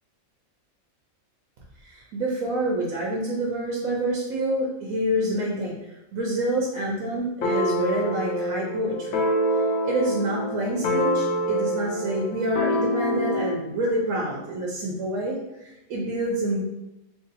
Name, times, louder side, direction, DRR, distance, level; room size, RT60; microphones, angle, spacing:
voice 1, 1.8-9.2 9.8-16.6, right 1 dB, 75° right, -3 dB, 1.0 m, -27 dB
sound 1, 7.4-13.6, equal, 80° left, 1.0 m, -26 dB
3.0 x 2.6 x 4.0 m, 0.93 s
omnidirectional pair, 1.5 m